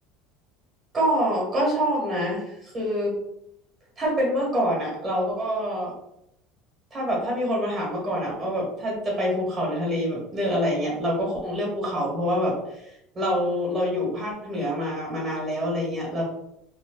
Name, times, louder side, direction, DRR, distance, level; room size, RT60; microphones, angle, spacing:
voice 1, 0.9-3.1 4.0-5.9 6.9-12.5 13.1-16.2, equal, 25° right, -4 dB, 1.4 m, -26 dB
3.2 x 2.2 x 2.4 m, 0.81 s
cardioid pair, 145°, 0 cm